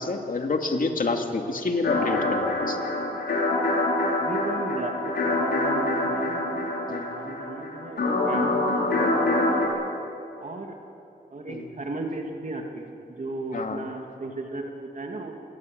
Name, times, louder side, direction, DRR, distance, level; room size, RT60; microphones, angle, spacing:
voice 1, 0.0-2.8 6.9-7.1 11.5-11.6 13.5-13.8, left 3 dB, 55° left, 4 dB, 2.6 m, -28 dB
sound 1, 1.8-9.7, left 2 dB, 80° left, 5.6 m, -25 dB
voice 2, 4.2-6.8 7.1-9.9 10.4-10.7 11.3-12.9 13.2-15.3, right 2 dB, 50° right, 2 dB, 2.7 m, -36 dB
27.0 x 19.5 x 8.1 m, 2.7 s
wide cardioid pair, 80°, 17 cm